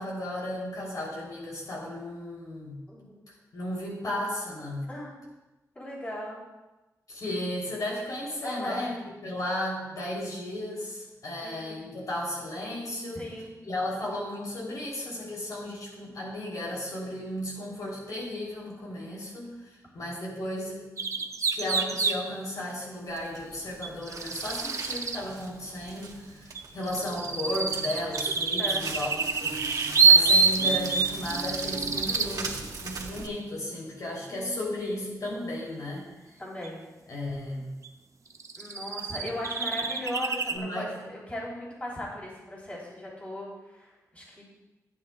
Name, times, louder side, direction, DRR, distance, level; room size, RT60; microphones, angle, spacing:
voice 1, 0.0-2.8 3.5-4.9 7.1-13.2 13.6-20.8 21.2-29.1 29.4-29.6 30.0-36.1 37.1-37.7 40.5-40.9, left 1 dB, 65° left, -4 dB, 3.5 m, -34 dB
voice 2, 2.9-3.2 4.9-5.2 5.8-6.4 8.4-8.9 11.4-11.9 13.2-13.5 27.0-27.1 28.6-28.9 32.1-32.4 34.3-34.7 36.4-36.8 38.6-44.4, left 1 dB, 20° left, -5 dB, 3.7 m, -38 dB
sound 1, 21.0-22.2 23.8-25.2 26.6-32.3 36.6-36.7 37.8-37.9 38.4-40.6, right 4 dB, 55° right, 0.7 m, -26 dB
Crackle, 23.1-33.3, right 4 dB, 75° right, 1.6 m, -40 dB
16.0 x 9.4 x 2.4 m, 1.1 s
wide cardioid pair, 130°, 7 cm